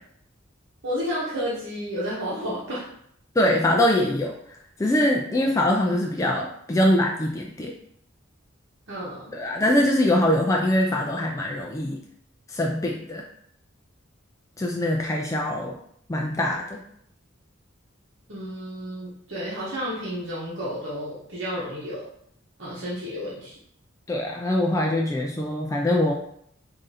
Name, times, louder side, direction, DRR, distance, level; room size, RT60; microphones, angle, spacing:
voice 1, 0.8-2.8 5.2-5.4 8.9-9.4 18.3-22.1 22.6-23.5, equal, 70° right, -8 dB, 1.0 m, -31 dB
voice 2, 3.4-4.4 4.8-7.7 9.3-12.0 12.5-13.2 14.6-15.8 16.1-16.8 24.1-26.1, left 1 dB, 15° left, 0 dB, 0.3 m, -23 dB
3.7 x 2.6 x 4.0 m, 0.69 s
head